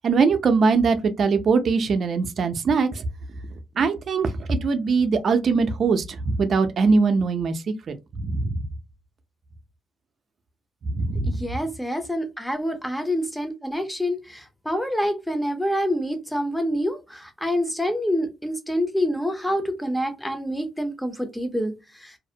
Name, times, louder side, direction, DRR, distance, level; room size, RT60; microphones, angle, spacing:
voice 1, 0.0-3.0 3.8-8.6 10.9-11.4, right 4 dB, 55° right, 0.4 m, -22 dB
voice 2, 11.3-21.7 22.0-22.1, equal, 5° left, 0.6 m, -27 dB
2.5 x 2.0 x 2.6 m
cardioid pair, 90°, 0 cm